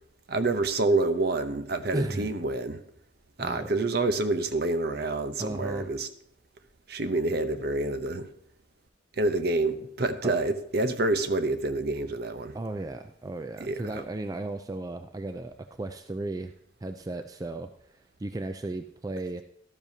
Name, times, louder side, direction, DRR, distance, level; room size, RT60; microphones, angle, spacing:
voice 1, 0.3-2.8 3.4-6.1 6.9-8.3 9.2-12.5 13.6-14.0, right 2 dB, 55° right, 0.7 m, -27 dB
voice 2, 1.9-2.3 3.4-3.7 5.4-5.9 10.2-10.4 12.5-16.5 16.8-19.4, right 2 dB, 20° right, 0.3 m, -35 dB
12.0 x 12.0 x 2.8 m
head